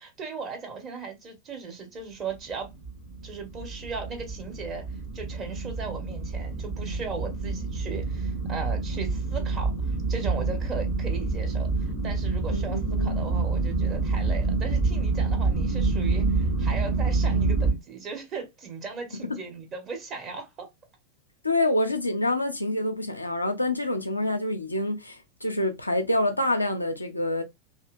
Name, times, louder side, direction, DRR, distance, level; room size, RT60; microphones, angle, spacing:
voice 1, 0.0-2.7 3.2-4.8 5.1-20.7, right 5 dB, 30° right, 1.0 m, -37 dB
sound 1, 2.4-17.7, right 3 dB, 50° right, 1.4 m, -27 dB
voice 2, 12.5-13.2 21.4-27.4, left 1 dB, 85° left, 0.5 m, -27 dB
2.8 x 2.6 x 2.5 m
figure-of-eight pair, 90°, 0 cm